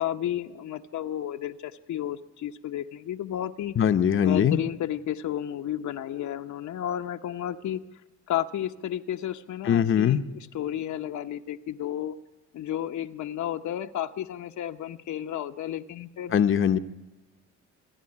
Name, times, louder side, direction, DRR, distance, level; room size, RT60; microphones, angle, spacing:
voice 1, 0.0-3.7 4.2-7.8 8.3-12.1 12.5-16.4, left 11 dB, 70° left, 0.9 m, -32 dB
voice 2, 3.8-4.6 9.6-10.2 16.3-16.8, left 8 dB, 45° left, 0.8 m, -21 dB
26.5 x 10.0 x 9.7 m
cardioid pair, 90°, 30 cm